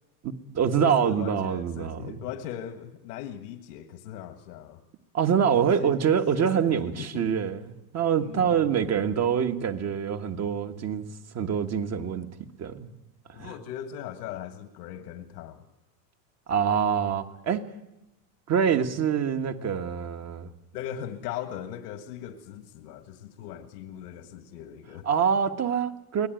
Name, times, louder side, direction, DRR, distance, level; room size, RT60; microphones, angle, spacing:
voice 1, 0.2-2.2 5.1-7.6 7.9-11.0 11.3-12.3 12.6-12.9 13.4-13.5 16.5-17.6 18.5-20.5 25.0-26.3, right 7 dB, 35° right, 1.6 m, -25 dB
voice 2, 0.8-4.8 5.5-6.0 6.3-7.3 8.2-8.7 13.3-15.6 20.7-25.1, left 10 dB, 80° left, 1.7 m, -39 dB
24.0 x 18.0 x 9.2 m
supercardioid pair, 120°, 46 cm